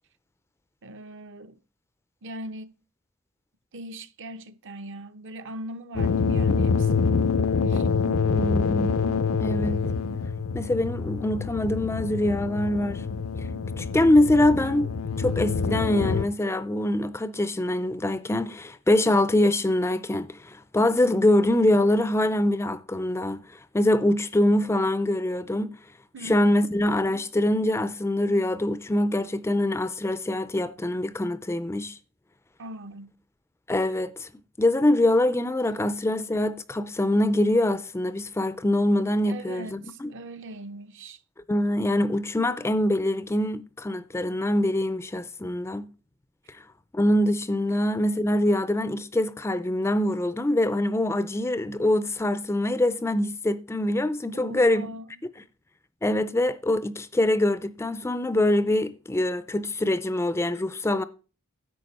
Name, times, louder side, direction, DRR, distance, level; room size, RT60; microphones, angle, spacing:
voice 1, 0.8-1.6 2.2-2.7 3.7-7.4 7.7-7.9 26.1-26.7 32.6-33.2 39.3-41.2 47.7-47.8 54.3-55.2, right 1 dB, 60° right, 0.7 m, -40 dB
sound 1, 6.0-16.3, left 5 dB, 70° left, 0.5 m, -26 dB
voice 2, 8.2-9.0 9.4-9.8 10.5-13.0 13.8-14.9 15.2-23.4 23.7-25.8 26.2-32.0 33.7-34.3 34.6-40.1 41.5-45.9 46.9-54.9 56.0-61.0, left 1 dB, 10° left, 0.4 m, -24 dB
11.0 x 7.8 x 4.1 m
head